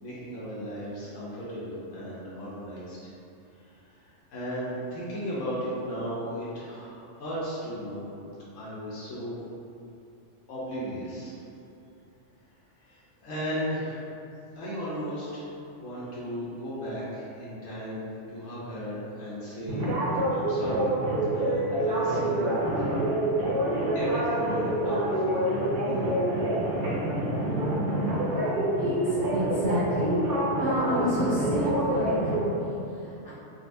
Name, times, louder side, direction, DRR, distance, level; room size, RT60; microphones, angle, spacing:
voice 1, 0.0-3.1 3.7-3.8 4.3-8.1 8.6-9.4 10.5-11.3 12.9-14.0 14.6-18.0 18.3-19.9 20.3-20.9 21.3-22.5 23.9-26.0, equal, 90° left, -9 dB, 1.1 m, -36 dB
sound 1, 19.7-32.4, right 1 dB, 55° right, 0.7 m, -26 dB
voice 2, 28.7-30.1 30.6-33.3, left 1 dB, 10° left, -14 dB, 0.9 m, -31 dB
3.8 x 2.4 x 2.5 m, 2.7 s
omnidirectional pair, 1.3 m